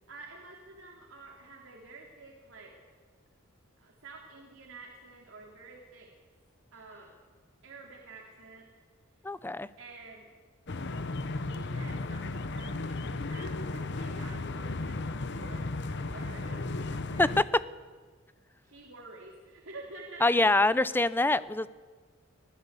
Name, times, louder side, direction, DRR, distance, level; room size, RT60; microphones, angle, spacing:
voice 1, 0.1-2.7 3.8-6.1 6.7-7.1 7.6-8.7 9.8-10.3 11.3-15.0 15.3-16.7 16.9-17.4 18.6-20.2, right 3 dB, 70° right, -1 dB, 3.4 m, -49 dB
voice 2, 9.2-9.7 17.2-17.3 20.2-21.7, left 2 dB, 10° left, 16 dB, 0.6 m, -25 dB
sound 1, 10.7-17.4, left 2 dB, 60° left, 1.0 m, -35 dB
25.0 x 16.0 x 8.3 m, 1.5 s
head